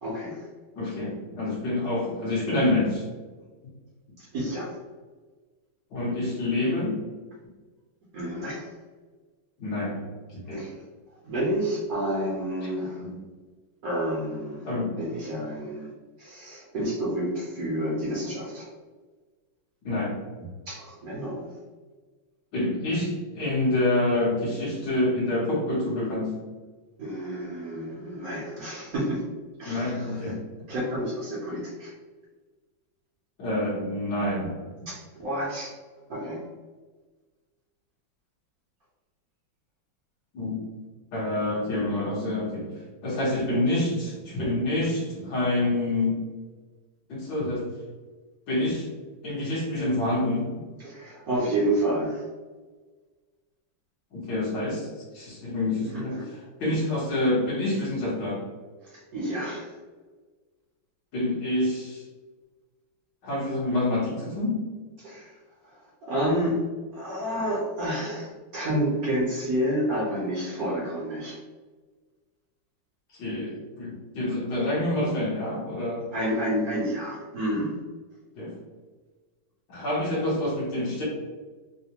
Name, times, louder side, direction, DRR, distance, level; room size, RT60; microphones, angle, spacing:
voice 1, 0.0-0.4 4.3-4.7 8.1-8.6 10.5-10.7 11.2-13.0 13.8-14.6 15.0-15.9 16.2-18.6 20.7-21.5 27.0-29.2 29.6-29.9 30.7-31.9 34.9-35.7 36.1-36.4 50.8-52.2 59.1-59.6 65.0-65.3 66.1-66.6 66.9-68.3 68.5-71.4 76.1-77.7, right 1 dB, 60° right, -6 dB, 1.0 m, -29 dB
voice 2, 0.8-3.1 5.9-7.0 9.6-10.0 10.3-10.6 12.6-12.7 13.0-13.2 14.7-15.0 19.9-20.1 22.5-26.3 29.7-30.4 33.4-34.6 40.3-40.6 41.1-42.7 43.0-46.2 47.1-47.6 48.5-48.9 49.2-50.5 54.1-54.9 55.1-58.4 61.1-62.0 63.2-64.6 73.1-76.0 78.4-78.5 79.7-81.0, left 1 dB, 65° left, -6 dB, 1.7 m, -27 dB
4.0 x 2.1 x 2.8 m, 1.4 s
omnidirectional pair, 2.2 m